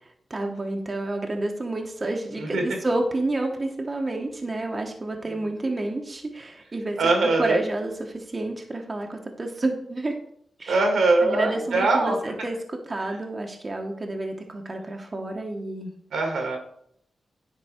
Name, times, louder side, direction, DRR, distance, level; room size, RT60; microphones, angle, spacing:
voice 1, 0.3-7.0 7.4-10.1 10.6-10.8 11.2-15.9, right 2 dB, 35° right, 2 dB, 1.1 m, -29 dB
voice 2, 7.0-7.6 10.7-12.2 16.1-16.6, right 3 dB, 85° right, 2 dB, 1.8 m, -22 dB
9.9 x 3.8 x 4.4 m, 0.70 s
cardioid pair, 60°, 0 cm